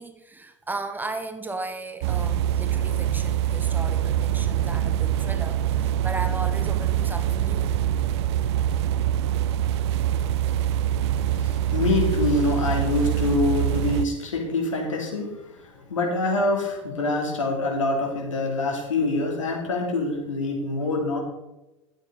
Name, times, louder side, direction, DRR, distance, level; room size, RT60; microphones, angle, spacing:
voice 1, 0.0-7.8, right 2 dB, 10° right, 7 dB, 1.0 m, -36 dB
sound 1, 2.0-14.1, right 11 dB, 60° right, 0.6 m, -24 dB
voice 2, 11.3-21.2, left 3 dB, 75° left, 0 dB, 2.8 m, -25 dB
12.0 x 7.8 x 3.9 m, 1.0 s
figure-of-eight pair, 80°, 16 cm